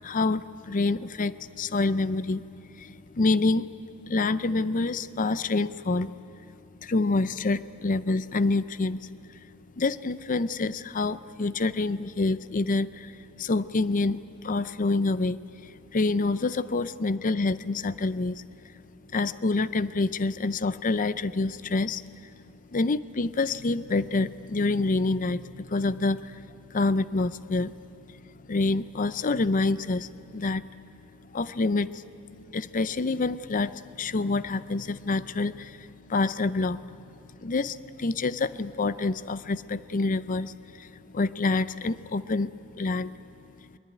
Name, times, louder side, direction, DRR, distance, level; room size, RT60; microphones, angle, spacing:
voice 1, 0.0-2.4 2.8-3.7 4.1-6.1 6.8-9.5 9.8-18.7 19.1-22.3 22.7-27.7 28.1-30.6 31.3-32.1 32.5-36.8 37.4-42.5 42.8-43.1, left 3 dB, 35° left, 15 dB, 0.5 m, -27 dB
23.5 x 21.0 x 9.6 m, 2.9 s
head